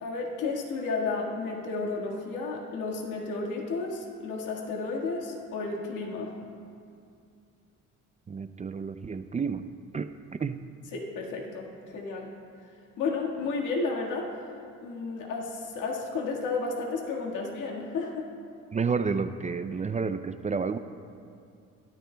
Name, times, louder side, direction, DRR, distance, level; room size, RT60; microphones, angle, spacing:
voice 1, 0.0-6.3 10.9-12.3 13.0-14.3 14.8-18.3, left 3 dB, 90° left, -2 dB, 1.8 m, -32 dB
voice 2, 8.3-9.7 9.9-10.1 10.4-10.6 18.7-20.8, right 5 dB, 25° right, 10 dB, 0.4 m, -30 dB
22.0 x 13.5 x 2.3 m, 2.5 s
cardioid pair, 90°, 30 cm